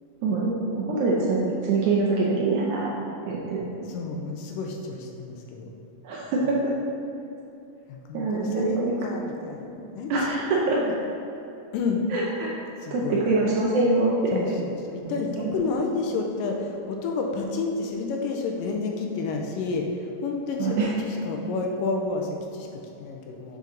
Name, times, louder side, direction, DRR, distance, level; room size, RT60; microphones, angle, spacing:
voice 1, 0.2-2.9 3.2-3.6 6.0-6.7 8.1-9.0 10.1-10.8 12.1-12.5 12.9-14.1 15.4-15.5 20.6-20.9, right 3 dB, 75° right, -4 dB, 1.8 m, -24 dB
voice 2, 3.9-5.7 7.9-10.1 10.6-10.9 11.7-12.0 12.8-13.3 14.3-23.6, left 4 dB, 80° left, 2 dB, 2.1 m, -30 dB
7.5 x 5.3 x 3.8 m, 2.8 s
omnidirectional pair, 4.1 m